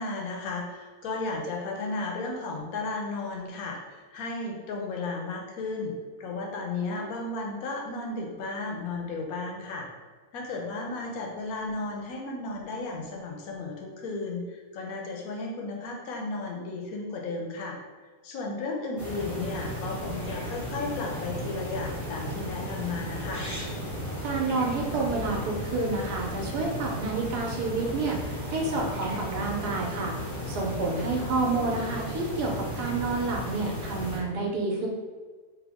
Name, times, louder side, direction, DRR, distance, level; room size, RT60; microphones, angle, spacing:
voice 1, 0.0-5.9 6.2-9.9 10.3-17.8 18.2-23.5, left 3 dB, 70° left, 0 dB, 1.0 m, -34 dB
sound 1, 19.0-34.2, equal, 30° left, 0.3 m, -35 dB
voice 2, 24.2-34.9, right 3 dB, 85° right, 0 dB, 1.2 m, -29 dB
3.4 x 2.1 x 3.4 m, 1.4 s
omnidirectional pair, 1.7 m